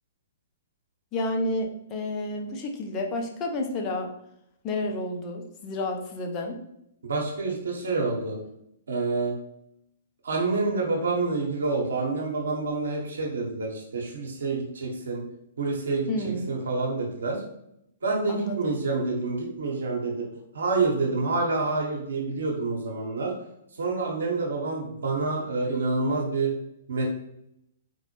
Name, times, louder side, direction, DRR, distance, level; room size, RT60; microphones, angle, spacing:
voice 1, 1.1-4.1 4.6-6.6 16.1-16.5 18.3-18.8, left 2 dB, 30° left, 1 dB, 0.7 m, -30 dB
voice 2, 7.0-8.4 8.9-9.3 10.2-15.2 15.6-16.1 16.5-17.4 18.0-20.3 20.5-23.3 23.8-26.5 26.9-27.1, right 3 dB, 75° right, -1 dB, 0.9 m, -27 dB
4.3 x 2.0 x 3.1 m, 0.78 s
figure-of-eight pair, 120°, 0 cm